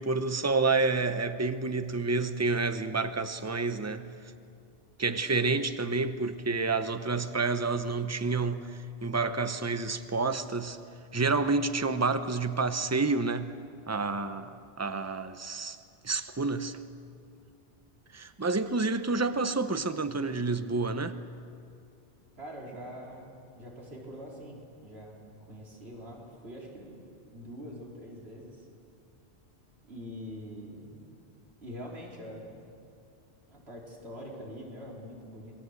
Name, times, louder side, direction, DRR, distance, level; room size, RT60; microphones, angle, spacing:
voice 1, 0.0-4.1 5.0-10.8 11.1-13.6 13.9-15.8 16.0-16.8 18.1-21.2, right 3 dB, 15° right, 0.8 m, -29 dB
voice 2, 22.4-27.0 27.3-28.7 29.9-31.2 31.6-32.7 33.5-35.6, equal, 75° right, 4.1 m, -44 dB
27.0 x 20.0 x 8.0 m
omnidirectional pair, 1.1 m